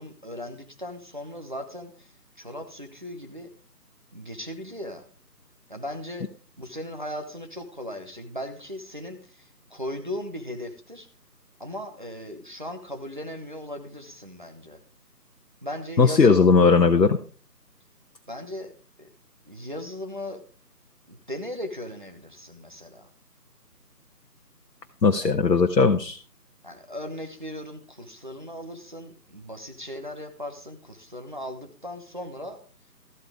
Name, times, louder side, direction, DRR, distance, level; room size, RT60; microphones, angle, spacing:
voice 1, 0.0-3.5 4.1-5.0 5.7-6.3 6.6-11.1 11.6-14.8 15.6-16.5 18.3-18.7 19.0-19.1 19.5-20.4 21.1-23.1 25.2-25.4 26.6-32.6, left 1 dB, 30° right, 4 dB, 0.9 m, -37 dB
voice 2, 16.0-17.2 25.0-26.2, left 4 dB, 75° left, 5 dB, 1.0 m, -18 dB
13.5 x 8.3 x 3.5 m, 0.39 s
figure-of-eight pair, 160°, 49 cm